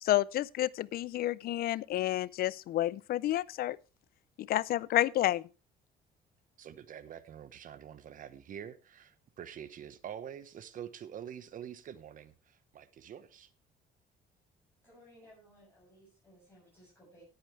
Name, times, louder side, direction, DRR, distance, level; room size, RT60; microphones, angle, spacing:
voice 1, 0.0-3.8 4.4-5.4, left 14 dB, 60° left, 0.5 m, -30 dB
voice 2, 6.6-13.5, right 9 dB, 55° right, 1.1 m, -46 dB
voice 3, 14.8-17.2, equal, 10° left, 7.3 m, -59 dB
17.5 x 8.6 x 3.2 m
cardioid pair, 110°, 17 cm